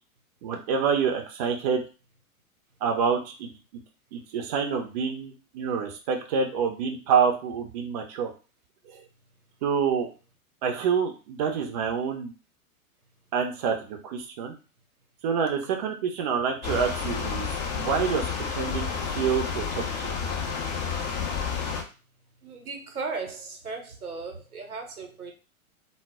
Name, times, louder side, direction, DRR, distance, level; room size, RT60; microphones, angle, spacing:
voice 1, 0.4-1.8 2.8-3.5 4.1-8.3 8.9-9.0 9.6-10.1 10.6-12.3 13.3-14.5 15.2-19.8, right 6 dB, 30° right, 3 dB, 0.4 m, -27 dB
sound 1, 16.6-21.8, left 6 dB, 35° left, 0.4 m, -30 dB
voice 2, 22.4-25.3, right 4 dB, 90° right, 4 dB, 0.7 m, -36 dB
2.0 x 2.0 x 3.4 m, 0.34 s
figure-of-eight pair, 105°, 43 cm